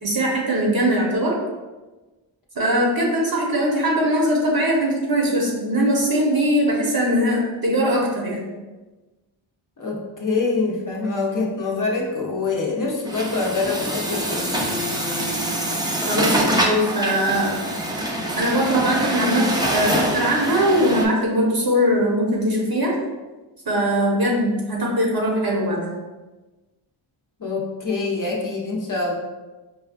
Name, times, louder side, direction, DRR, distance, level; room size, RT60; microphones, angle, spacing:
voice 1, 0.0-1.3 2.5-8.4 16.0-17.5 18.4-23.0 23.6-25.9, equal, 45° right, -2 dB, 1.1 m, -21 dB
voice 2, 9.8-14.7 27.4-29.1, left 3 dB, 40° left, -2 dB, 0.7 m, -25 dB
Truck, 13.1-21.1, right 1 dB, 10° right, 0.5 m, -24 dB
4.8 x 2.2 x 2.4 m, 1.2 s
cardioid pair, 60°, 49 cm